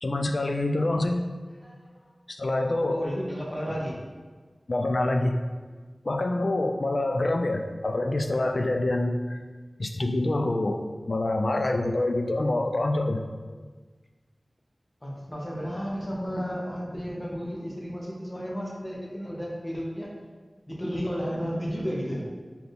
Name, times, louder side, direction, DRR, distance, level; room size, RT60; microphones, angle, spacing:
voice 1, 0.0-1.2 2.3-3.1 3.7-3.8 4.7-5.4 6.0-9.4 9.8-13.2 21.3-21.4, left 2 dB, 60° left, 5 dB, 0.3 m, -26 dB
voice 2, 1.6-1.9 2.9-4.0 15.0-20.1 20.7-22.2, equal, 25° left, -4 dB, 0.9 m, -33 dB
4.2 x 2.7 x 3.4 m, 1.4 s
wide cardioid pair, 60°, 0 cm